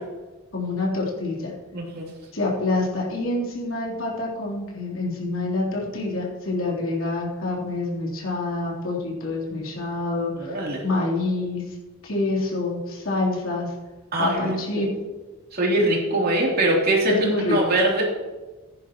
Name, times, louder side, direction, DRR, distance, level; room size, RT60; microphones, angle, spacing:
voice 1, 0.5-1.5 2.3-11.6 12.0-13.7 14.2-14.9 17.1-17.6, left 2 dB, 65° left, -4 dB, 3.7 m, -27 dB
voice 2, 1.7-2.1 10.4-10.8 14.1-14.8 15.5-17.2 17.5-18.0, right 1 dB, 50° right, -2 dB, 3.3 m, -22 dB
15.5 x 10.0 x 3.1 m, 1.2 s
head